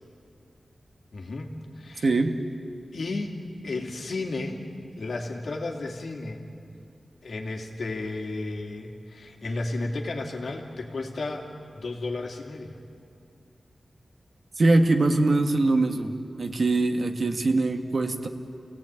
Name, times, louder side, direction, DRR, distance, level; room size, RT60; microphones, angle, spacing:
voice 1, 1.1-2.1 2.9-3.4 3.6-4.6 5.0-6.4 7.2-11.5 11.7-12.8, left 2 dB, 80° left, 1 dB, 2.7 m, -33 dB
voice 2, 2.0-2.3 14.6-16.1 16.4-18.3, right 2 dB, 60° right, 5 dB, 1.7 m, -22 dB
29.5 x 17.0 x 9.0 m, 2.6 s
wide cardioid pair, 110°, 0 cm